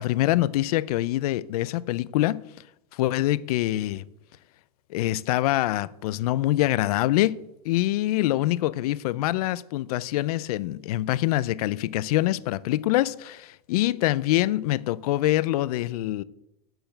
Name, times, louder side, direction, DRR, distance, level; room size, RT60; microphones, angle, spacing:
voice 1, 0.0-2.4 2.9-4.0 4.9-16.2, left 15 dB, 80° left, 0.5 m, -25 dB
7.9 x 6.8 x 7.9 m
supercardioid pair, 165°, 19 cm